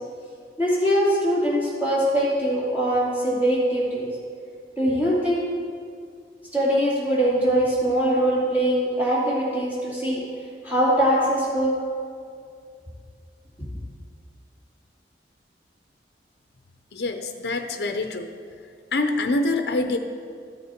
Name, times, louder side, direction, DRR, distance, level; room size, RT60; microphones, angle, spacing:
voice 1, 0.6-4.1 4.8-5.4 6.5-10.2 10.6-11.8, equal, 10° right, -8 dB, 2.5 m, -22 dB
voice 2, 16.9-18.3 18.9-20.0, left 2 dB, 65° left, 6 dB, 0.5 m, -25 dB
13.0 x 6.6 x 4.4 m, 2.3 s
head